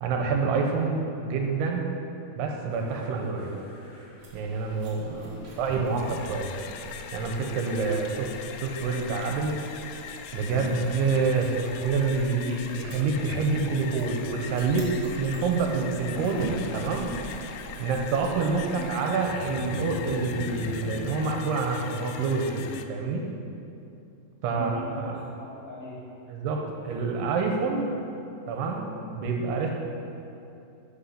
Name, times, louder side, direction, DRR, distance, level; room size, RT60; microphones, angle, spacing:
voice 1, 0.0-1.8 2.4-3.5 4.3-5.2 5.6-6.5 7.1-8.3 8.6-9.6 10.3-16.5 16.7-17.1 17.8-23.3 24.4-25.2 26.3-27.9 28.5-29.7, right 4 dB, 80° right, 1 dB, 2.6 m, -27 dB
sound 1, 2.7-7.7 8.0-8.3 8.7-9.5 9.9-10.0 10.3-10.5 10.9-11.2 11.9-15.2 15.5-15.6 19.1-21.1, equal, 55° left, 3.5 m, -42 dB
sound 2, 4.2-18.8, right 2 dB, 60° right, 1.2 m, -43 dB
voice 2, 5.0-5.5 18.6-18.9 24.4-26.0, left 1 dB, 35° left, -8 dB, 2.3 m, -42 dB
sound 3, 5.8-22.8, left 8 dB, 85° left, 2.2 m, -41 dB
10.0 x 5.6 x 5.8 m, 2.7 s
omnidirectional pair, 5.0 m